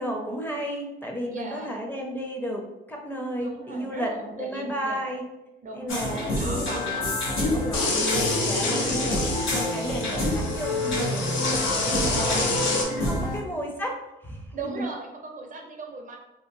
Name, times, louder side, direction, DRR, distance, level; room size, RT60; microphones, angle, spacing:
voice 1, 0.0-5.2 5.7-6.6 7.4-8.1 8.4-9.2 9.7-10.3 10.5-11.3 11.9-12.4 12.8-14.0 14.2-14.8, equal, 10° left, 0 dB, 0.5 m, -33 dB
voice 2, 1.3-1.8 3.4-5.1 5.6-7.1 7.6-7.9 8.7-9.1 10.1-10.4 11.8-12.6 13.0-13.5 14.5-16.2, right 3 dB, 40° right, 2 dB, 0.5 m, -38 dB
sound 1, 5.9-13.4, left 1 dB, 90° left, 1.1 m, -28 dB
sound 2, 7.7-12.8, left 3 dB, 75° left, 0.6 m, -28 dB
2.8 x 2.2 x 2.6 m, 0.97 s
cardioid pair, 90°, 20 cm